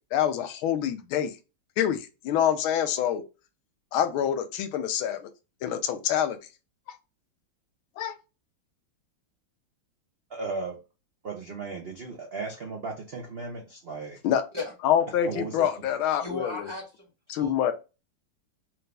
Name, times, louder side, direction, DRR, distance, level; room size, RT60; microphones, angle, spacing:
voice 1, 0.1-1.3 1.8-3.2 3.9-5.3 5.6-6.4 6.9-7.0 8.0-8.1 14.2-14.4 14.8-16.7 17.3-17.7, left 9 dB, 85° left, 1.5 m, -26 dB
voice 2, 10.3-10.8 11.2-14.2 15.3-15.7, right 3 dB, 70° right, 0.5 m, -36 dB
voice 3, 16.2-17.7, left 3 dB, 20° right, 0.8 m, -37 dB
4.4 x 2.6 x 3.3 m
omnidirectional pair, 2.3 m